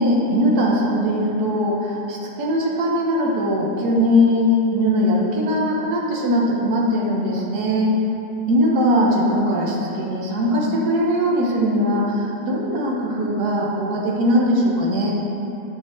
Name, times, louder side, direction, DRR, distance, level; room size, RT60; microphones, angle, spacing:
voice 1, 0.0-7.9 8.5-15.1, equal, 75° right, -3 dB, 1.7 m, -20 dB
10.5 x 6.2 x 4.5 m, 2.8 s
omnidirectional pair, 1.7 m